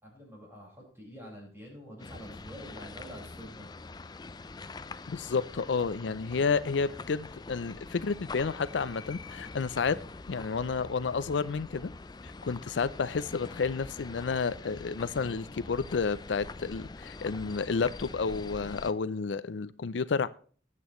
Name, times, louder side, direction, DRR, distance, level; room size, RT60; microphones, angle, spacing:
voice 1, 0.0-3.7, equal, 15° right, -2 dB, 5.0 m, -47 dB
sound 1, 2.0-18.9, left 3 dB, 20° left, 0.4 m, -44 dB
voice 2, 5.1-10.0 10.3-11.9 12.2-20.3, left 5 dB, 75° left, 15 dB, 0.5 m, -31 dB
19.5 x 8.5 x 3.1 m, 0.42 s
head